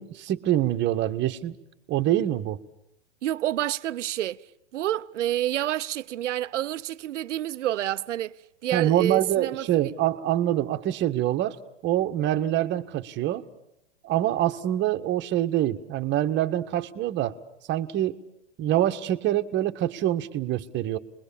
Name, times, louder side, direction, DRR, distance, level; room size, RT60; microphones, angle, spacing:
voice 1, 0.0-1.6 1.9-2.6 8.7-13.4 14.0-17.4 17.7-18.2 18.6-21.0, right 12 dB, 30° right, 1.5 m, -25 dB
voice 2, 3.2-4.4 4.7-8.4 8.6-9.9, right 13 dB, 75° right, 0.9 m, -28 dB
29.5 x 22.0 x 7.2 m
hypercardioid pair, 125°, 36 cm